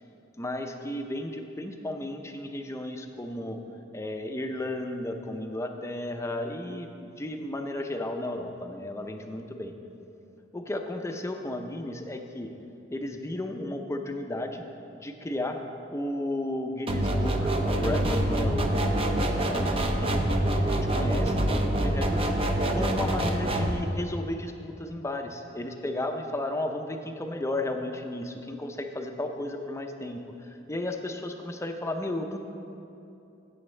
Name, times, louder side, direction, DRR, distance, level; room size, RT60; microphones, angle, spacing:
voice 1, 0.4-3.6 3.9-9.7 10.5-12.5 12.9-14.6 15.0-15.6 15.9-20.1 20.5-22.3 22.7-32.4, left 1 dB, 15° left, 5 dB, 0.6 m, -34 dB
sound 1, 16.9-23.7, right 1 dB, 30° right, 0.7 m, -26 dB
16.0 x 7.1 x 3.3 m, 2.9 s
head